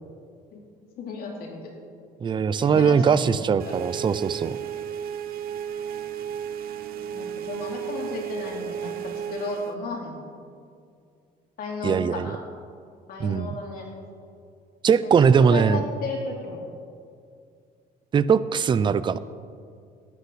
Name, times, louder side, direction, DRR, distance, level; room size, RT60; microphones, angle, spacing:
voice 1, 1.0-1.7 2.6-3.8 7.1-10.3 11.6-12.5 13.1-13.9 15.0-16.6, left 3 dB, 60° left, -1 dB, 2.8 m, -34 dB
voice 2, 2.2-4.6 11.8-12.4 13.2-13.5 14.8-15.8 18.1-19.2, right 6 dB, 30° right, 15 dB, 0.4 m, -20 dB
sound 1, 3.6-9.8, right 8 dB, 60° right, 0.7 m, -33 dB
13.0 x 10.0 x 4.1 m, 2.3 s
cardioid pair, 110°, 17 cm